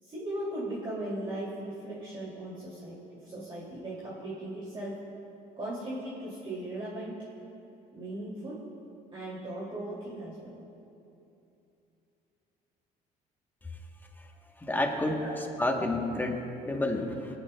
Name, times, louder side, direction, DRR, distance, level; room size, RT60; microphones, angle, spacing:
voice 1, 0.0-4.9 5.6-7.1 7.9-8.6 9.1-10.5 15.2-15.3, right 1 dB, 30° right, -8 dB, 2.6 m, -38 dB
voice 2, 14.6-15.3 15.6-17.4, left 1 dB, 10° left, 2 dB, 1.0 m, -30 dB
20.5 x 10.5 x 2.2 m, 2.8 s
cardioid pair, 110°, 17 cm